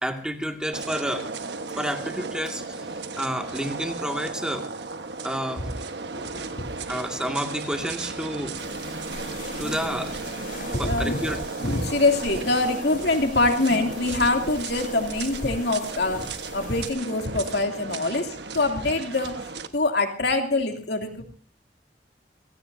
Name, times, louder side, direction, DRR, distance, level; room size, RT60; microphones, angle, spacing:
voice 1, 0.0-1.3 1.8-2.9 3.2-4.7 5.2-5.7 6.9-8.5 9.6-10.3 10.8-11.4, equal, 5° right, 4 dB, 2.1 m, -30 dB
sound 1, 0.7-19.7, right 3 dB, 75° right, 1.4 m, -35 dB
sound 2, 8.6-16.9, left 2 dB, 50° left, 5.6 m, -41 dB
voice 2, 10.7-19.4 19.7-21.2, left 2 dB, 65° left, 4 dB, 2.8 m, -24 dB
29.0 x 17.0 x 2.7 m, 0.36 s
head